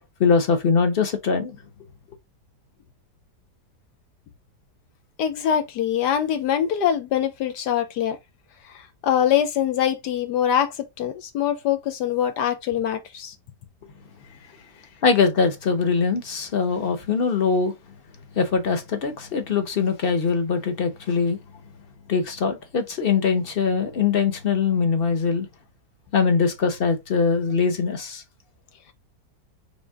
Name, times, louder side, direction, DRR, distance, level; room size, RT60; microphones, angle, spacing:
voice 1, 0.2-1.6 15.0-17.7 18.3-21.4 22.1-25.5 26.1-28.2, left 5 dB, 45° left, 0.8 m, -22 dB
voice 2, 5.2-8.2 8.7-13.3, left 9 dB, 75° left, 1.2 m, -23 dB
4.2 x 3.4 x 3.4 m
omnidirectional pair, 1.8 m